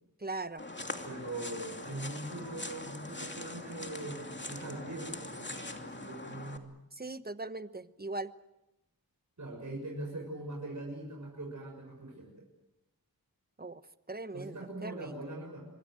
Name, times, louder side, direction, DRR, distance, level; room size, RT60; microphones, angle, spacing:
voice 1, 0.2-0.7 6.9-8.3 13.6-13.8 14.1-15.1, right 2 dB, 25° right, 12 dB, 1.2 m, -40 dB
sound 1, 0.6-6.6, left 2 dB, 30° left, 2.7 m, -42 dB
voice 2, 1.0-6.8 9.4-12.5 14.3-15.7, right 2 dB, 50° right, 0 dB, 6.6 m, -42 dB
26.5 x 22.5 x 7.9 m, 0.92 s
wide cardioid pair, 55°, 37 cm